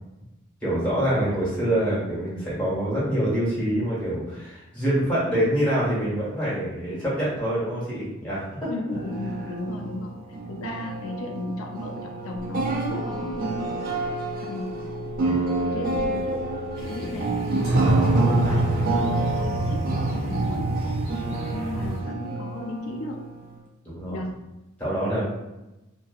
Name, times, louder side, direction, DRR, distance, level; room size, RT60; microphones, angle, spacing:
voice 1, 0.6-8.7 16.9-17.1 17.8-18.2 21.2-21.5 23.8-24.2 24.8-25.2, right 1 dB, 5° left, -9 dB, 1.4 m, -26 dB
voice 2, 8.7-10.1 10.5-13.5 14.4-14.9 15.2-16.4 16.8-17.3 18.1-20.8 21.5-23.3 24.1-24.4 25.0-25.2, left 2 dB, 90° left, 2 dB, 0.4 m, -35 dB
sound 1, 8.9-23.6, right 3 dB, 45° right, 0.3 m, -29 dB
Telephone, 12.4-19.7, left 3 dB, 20° right, 0.9 m, -38 dB
sound 2, 16.8-22.0, right 1 dB, 80° right, 0.9 m, -26 dB
2.7 x 2.6 x 2.4 m, 0.98 s
head